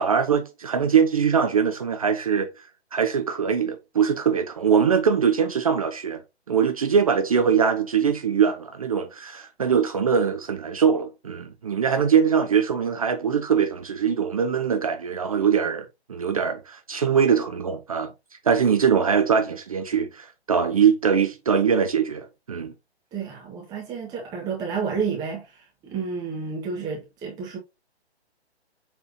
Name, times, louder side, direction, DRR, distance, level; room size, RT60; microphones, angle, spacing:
voice 1, 0.0-2.5 2.9-6.2 6.5-18.1 18.4-22.7, right 7 dB, 35° right, 0.7 m, -22 dB
voice 2, 23.1-27.6, right 5 dB, 10° right, 1.7 m, -30 dB
7.2 x 5.3 x 2.8 m
figure-of-eight pair, 135°, 33 cm